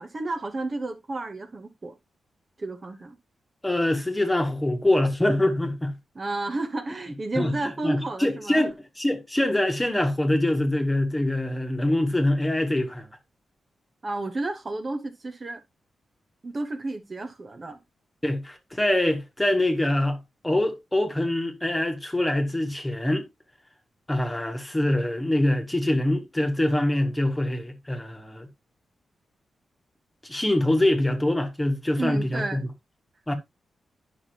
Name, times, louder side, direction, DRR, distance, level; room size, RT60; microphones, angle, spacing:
voice 1, 0.0-1.9 2.6-3.2 6.1-8.7 14.0-15.6 16.4-17.8 32.0-32.6, right 2 dB, 35° right, 1.0 m, -31 dB
voice 2, 3.6-5.9 7.4-7.5 7.8-8.7 9.0-13.1 18.2-23.2 24.1-28.5 30.2-32.6 33.3-33.4, left 1 dB, 10° left, 1.5 m, -24 dB
9.9 x 5.9 x 2.8 m
wide cardioid pair, 110°, 0 cm